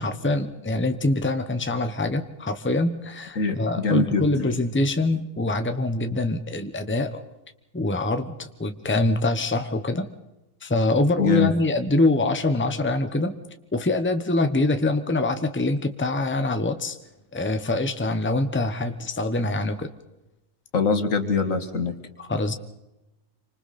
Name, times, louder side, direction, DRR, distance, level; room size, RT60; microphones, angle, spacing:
voice 1, 0.0-7.2 7.7-10.1 10.6-13.4 13.7-17.0 17.3-19.9 22.2-22.5, left 2 dB, 10° left, 8 dB, 1.0 m, -24 dB
voice 2, 3.4-4.5 11.2-11.5 20.7-21.9, left 4 dB, 80° left, 7 dB, 2.2 m, -23 dB
28.0 x 25.5 x 4.3 m, 0.96 s
omnidirectional pair, 1.4 m